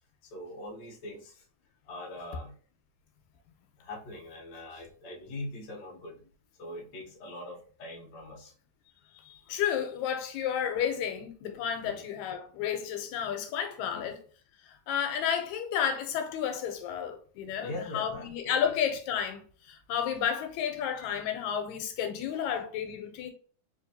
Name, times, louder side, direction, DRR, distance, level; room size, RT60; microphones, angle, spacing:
voice 1, 0.2-1.5 1.9-2.6 3.8-6.2 6.6-8.5 11.8-12.0 13.9-14.1 17.6-18.6 22.3-22.4, left 1 dB, 70° left, 1.0 m, -42 dB
voice 2, 9.2-14.2 14.6-23.3, left 8 dB, 85° left, 2.0 m, -32 dB
4.4 x 2.8 x 2.7 m
omnidirectional pair, 3.3 m